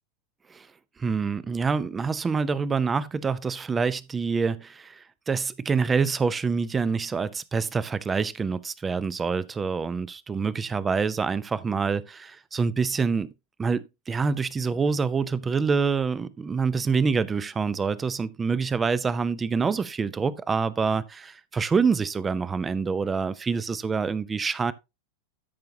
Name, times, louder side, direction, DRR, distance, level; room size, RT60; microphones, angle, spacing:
voice 1, 1.0-13.3 13.6-24.7, right 5 dB, 15° right, 0.6 m, -26 dB
13.5 x 5.8 x 2.8 m
figure-of-eight pair, 90°, 0 cm